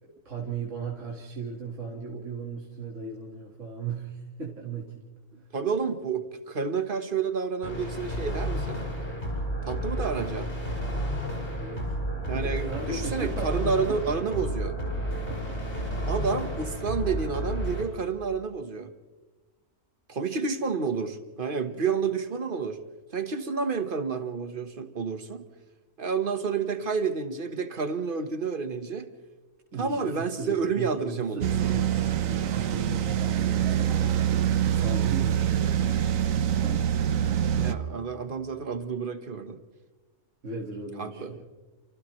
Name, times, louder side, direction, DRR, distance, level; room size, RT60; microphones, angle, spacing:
voice 1, 0.0-5.0 11.6-11.9 12.3-14.3 15.0-15.6 29.7-34.2 34.7-36.2 40.4-41.4, right 4 dB, 70° right, -2 dB, 2.4 m, -37 dB
voice 2, 5.5-8.8 9.6-10.5 12.3-14.7 16.1-18.9 20.1-22.8 23.1-25.5 26.0-29.1 29.8-31.7 37.6-39.6 41.0-41.3, right 5 dB, 40° right, 9 dB, 1.5 m, -30 dB
sound 1, 7.6-17.8, equal, 55° left, 6.4 m, -31 dB
sound 2, 31.4-37.7, right 10 dB, 90° right, 1.3 m, -25 dB
29.0 x 28.5 x 3.2 m, 1.2 s
omnidirectional pair, 1.4 m